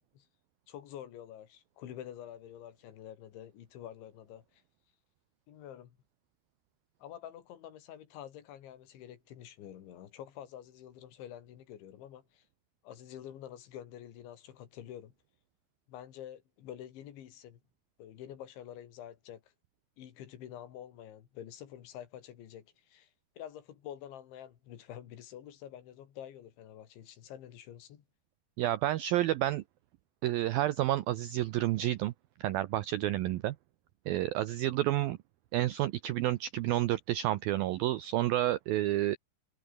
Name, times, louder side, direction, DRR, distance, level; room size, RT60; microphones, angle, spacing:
voice 1, 0.7-4.6 5.5-6.0 7.0-12.4 12.8-15.1 15.9-17.6 18.0-19.5 20.0-23.1 23.4-28.0, left 10 dB, 85° left, 4.7 m, -48 dB
voice 2, 28.6-29.6 30.2-32.1 32.4-33.6 34.1-35.2 35.5-39.2, right 14 dB, 80° right, 2.1 m, -30 dB
omnidirectional pair, 5.2 m